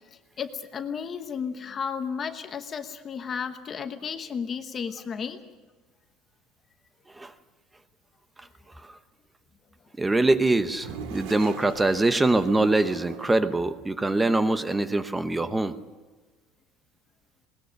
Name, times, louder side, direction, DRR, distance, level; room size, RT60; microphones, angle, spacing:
voice 1, 0.4-5.4, left 6 dB, 25° left, 8 dB, 1.1 m, -33 dB
voice 2, 10.0-15.8, right 2 dB, 10° right, 11 dB, 0.9 m, -23 dB
Toilet flush, 10.5-13.6, right 7 dB, 70° right, 2.2 m, -41 dB
21.0 x 20.0 x 6.5 m, 1.3 s
cardioid pair, 180°, 0 cm